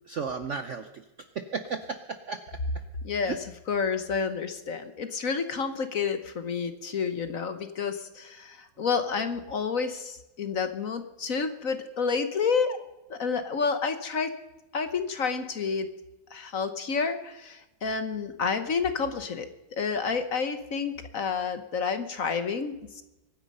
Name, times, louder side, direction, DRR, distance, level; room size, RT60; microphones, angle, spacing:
voice 1, 0.1-1.0 1.4-2.6 3.2-3.4, right 5 dB, 60° right, 9 dB, 0.8 m, -34 dB
voice 2, 3.0-12.8 13.1-14.4 14.7-15.9 16.3-23.0, left 5 dB, 50° left, 10 dB, 1.3 m, -30 dB
24.0 x 9.8 x 5.4 m, 0.97 s
omnidirectional pair, 2.1 m